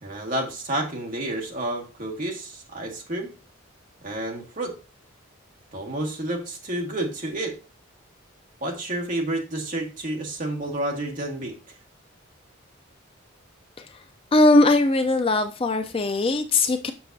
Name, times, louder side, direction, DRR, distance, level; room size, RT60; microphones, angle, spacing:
voice 1, 0.0-3.3 4.0-4.7 5.7-7.5 8.6-11.5, right 1 dB, 40° right, 1.5 m, -30 dB
voice 2, 14.3-16.9, left 2 dB, 25° left, 0.4 m, -20 dB
7.0 x 6.4 x 2.7 m
head